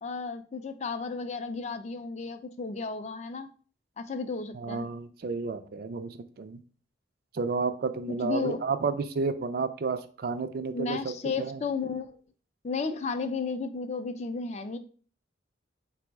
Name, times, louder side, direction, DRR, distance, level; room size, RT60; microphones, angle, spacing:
voice 1, 0.0-3.5 4.0-4.9 8.1-8.6 10.7-12.2 12.6-14.8, left 4 dB, 35° left, 9 dB, 0.3 m, -33 dB
voice 2, 4.5-6.6 7.3-11.1 11.4-11.6, right 4 dB, 50° right, 10 dB, 0.3 m, -31 dB
4.3 x 2.0 x 4.5 m, 0.42 s
head